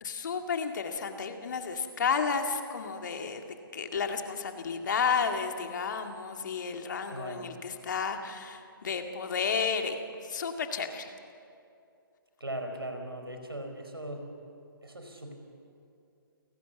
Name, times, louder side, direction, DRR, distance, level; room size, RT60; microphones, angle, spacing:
voice 1, 0.0-11.1, left 6 dB, 55° left, 5 dB, 2.2 m, -32 dB
voice 2, 7.1-7.5 12.4-14.3 14.8-15.3, right 1 dB, 85° right, 5 dB, 4.8 m, -39 dB
29.5 x 18.5 x 7.2 m, 2.5 s
figure-of-eight pair, 135°, 12 cm